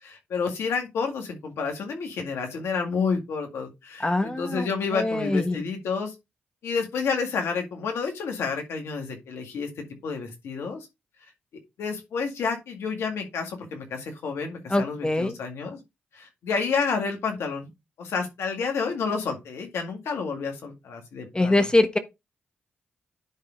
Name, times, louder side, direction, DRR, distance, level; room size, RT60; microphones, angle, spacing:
voice 1, 0.0-6.1 6.6-10.9 11.8-15.8 16.1-17.7 18.0-21.7, left 5 dB, 75° left, 2.0 m, -30 dB
voice 2, 4.0-4.7 4.9-5.6 14.7-15.3 21.3-22.0, left 2 dB, 20° left, 1.3 m, -23 dB
10.5 x 3.9 x 3.8 m
supercardioid pair, 45°, 4 cm